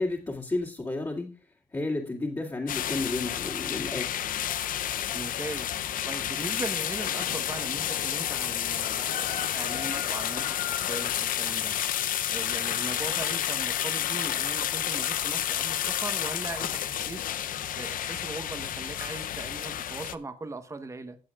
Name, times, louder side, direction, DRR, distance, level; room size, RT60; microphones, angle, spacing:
voice 1, 0.0-1.3 1.7-4.3, left 2 dB, 20° left, 2.4 m, -32 dB
sound 1, 2.7-20.1, left 11 dB, 75° left, 0.7 m, -30 dB
voice 2, 5.1-11.8 12.3-17.2 17.8-21.2, right 3 dB, 20° right, 1.1 m, -39 dB
16.5 x 8.3 x 2.4 m
cardioid pair, 120°, 14 cm